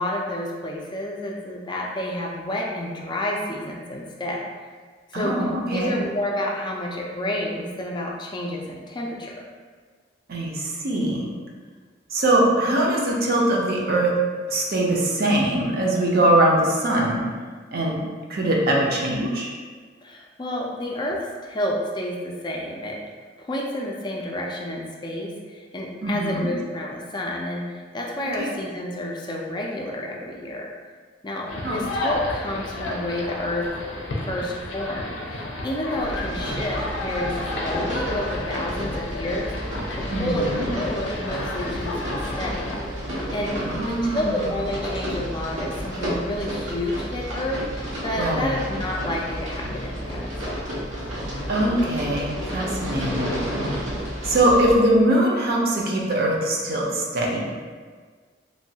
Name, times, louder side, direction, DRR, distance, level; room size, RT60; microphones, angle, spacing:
voice 1, 0.0-4.5 5.1-5.4 5.7-9.4 20.0-23.0 23.4-30.7 31.2-33.7 34.2-39.5 40.0-42.6 43.3-43.5 43.9-50.8, left 1 dB, 25° left, -2 dB, 0.3 m, -30 dB
voice 2, 5.1-5.9 10.3-11.3 12.1-14.1 14.5-17.2 17.7-18.0 18.3-19.5 26.0-26.5 28.4-28.5 31.6-31.8 40.1-40.6 43.6-44.4 48.2-48.6 51.5-53.4 54.2-57.5, right 1 dB, 55° right, -2 dB, 0.5 m, -22 dB
sound 1, 31.5-42.8, left 2 dB, 85° left, 0.5 m, -31 dB
sound 2, 36.0-54.8, equal, 90° right, 0.8 m, -31 dB
3.0 x 2.2 x 2.7 m, 1.5 s
head